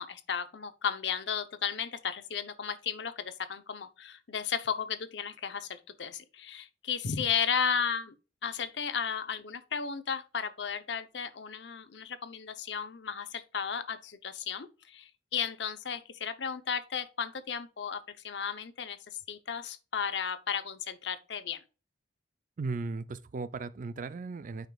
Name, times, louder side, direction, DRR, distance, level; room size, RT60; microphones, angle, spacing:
voice 1, 0.0-8.1 8.4-21.6, left 7 dB, 75° left, 0.7 m, -34 dB
voice 2, 22.6-24.7, right 3 dB, 50° right, 0.4 m, -36 dB
9.2 x 5.0 x 2.3 m
head